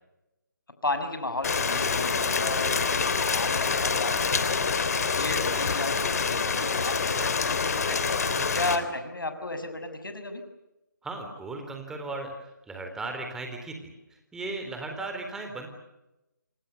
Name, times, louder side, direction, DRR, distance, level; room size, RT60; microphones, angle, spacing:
voice 1, 0.8-8.0 8.5-10.4, left 2 dB, 85° left, 8 dB, 6.9 m, -34 dB
Rain, 1.4-8.8, left 5 dB, 50° left, 3.4 m, -26 dB
voice 2, 11.0-12.3 12.7-15.7, right 3 dB, 5° right, 4 dB, 3.8 m, -36 dB
28.5 x 26.5 x 7.0 m, 0.96 s
figure-of-eight pair, 155°, 11 cm